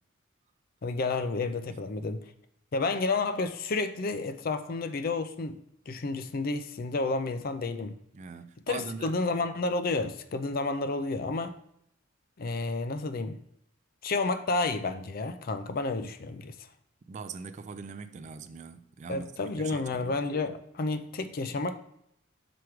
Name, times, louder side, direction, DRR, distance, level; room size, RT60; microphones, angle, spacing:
voice 1, 0.8-2.2 2.7-5.6 5.9-8.0 8.7-11.6 12.4-13.4 14.0-16.5 19.1-21.8, left 3 dB, 45° left, 0.4 m, -31 dB
voice 2, 8.1-9.2 17.1-19.3 19.6-20.2, right 5 dB, 35° right, 0.3 m, -41 dB
6.1 x 4.8 x 4.6 m
head